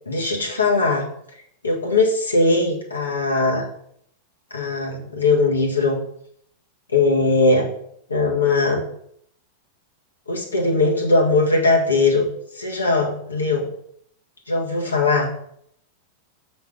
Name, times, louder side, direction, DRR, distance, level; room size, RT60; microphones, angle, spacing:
voice 1, 0.0-1.1 1.6-3.7 4.5-6.0 6.9-7.7 8.1-8.8 10.3-12.3 12.5-13.7 14.5-15.3, left 3 dB, 75° left, 0 dB, 1.6 m, -20 dB
7.2 x 4.3 x 5.3 m, 0.70 s
figure-of-eight pair, 90°, 0 cm